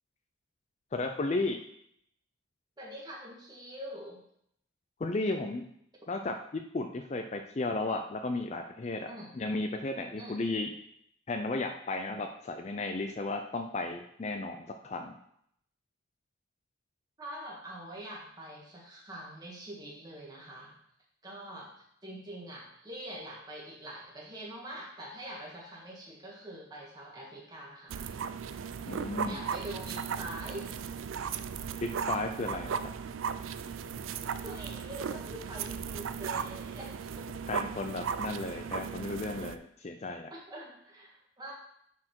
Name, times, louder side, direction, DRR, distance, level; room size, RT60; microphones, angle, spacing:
voice 1, 0.9-1.6 5.0-5.6 6.1-9.1 9.3-10.7 11.3-15.1 28.9-29.4 31.8-32.7 37.5-40.3, left 2 dB, 35° left, 5 dB, 0.4 m, -34 dB
voice 2, 2.8-4.2 9.1-9.3 10.2-10.4 17.2-20.7 21.2-28.1 28.8-30.7 34.1-37.3 40.3-41.5, right 1 dB, 20° right, -3 dB, 1.8 m, -44 dB
sound 1, 27.9-39.6, right 6 dB, 75° right, 0.4 m, -36 dB
9.6 x 4.3 x 4.5 m, 0.72 s
head